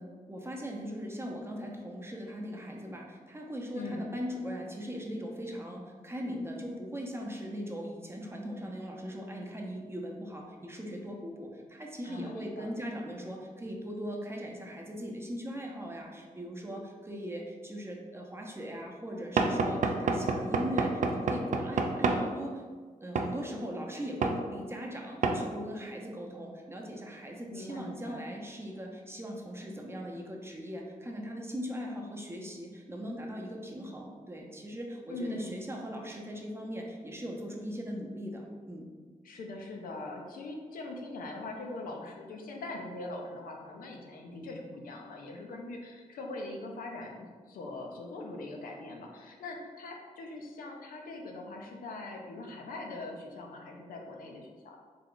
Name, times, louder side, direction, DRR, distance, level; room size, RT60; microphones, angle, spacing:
voice 1, 0.0-22.6 23.0-38.9, equal, 15° right, 0 dB, 0.7 m, -39 dB
voice 2, 3.7-4.1 12.0-12.7 27.5-28.3 35.1-35.6 39.2-54.8, left 2 dB, 85° left, 1 dB, 0.5 m, -42 dB
Knock / Wood, 19.4-22.3 23.2-23.3 24.2-24.4 25.2-25.4, right 4 dB, 60° right, 0.4 m, -28 dB
3.3 x 2.3 x 3.7 m, 1.5 s
cardioid pair, 60°, 14 cm